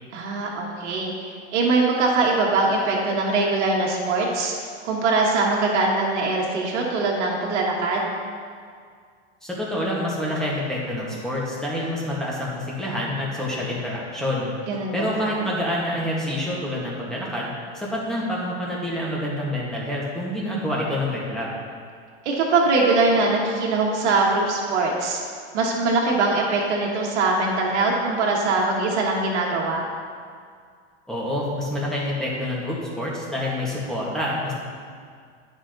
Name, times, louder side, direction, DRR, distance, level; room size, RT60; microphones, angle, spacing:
voice 1, 0.1-4.5 4.8-8.1 14.7-15.3 22.2-25.2 25.5-29.8, right 3 dB, 75° right, -2 dB, 1.4 m, -22 dB
voice 2, 9.4-14.5 14.9-21.5 31.1-34.5, left 1 dB, ahead, -6 dB, 2.1 m, -27 dB
9.7 x 5.1 x 3.9 m, 2.1 s
hypercardioid pair, 105°, 34 cm